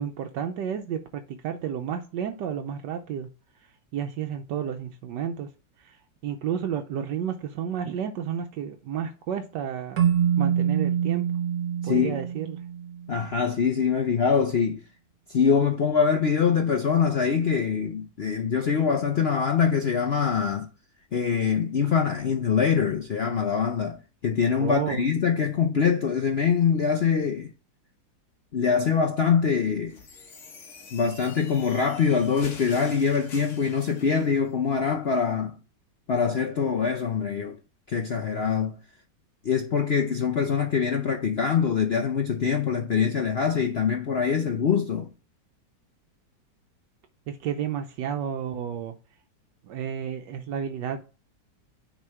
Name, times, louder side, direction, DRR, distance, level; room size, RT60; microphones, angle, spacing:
voice 1, 0.0-3.3 3.9-5.5 5.8-6.0 6.2-10.0 10.4-11.2 11.8-12.6 24.6-25.0 47.3-48.9 49.6-51.0, right 8 dB, 80° right, 1.3 m, -31 dB
Keyboard (musical), 10.0-13.2, right 9 dB, 60° right, 1.5 m, -25 dB
voice 2, 11.8-12.2 13.1-14.8 15.3-20.7 21.1-27.5 28.5-30.0 30.9-35.6 36.1-37.6 37.9-38.8 39.4-45.1, left 6 dB, 65° left, 0.6 m, -24 dB
sound 1, 29.9-34.3, left 4 dB, 45° left, 1.4 m, -46 dB
9.7 x 3.7 x 4.5 m
omnidirectional pair, 1.9 m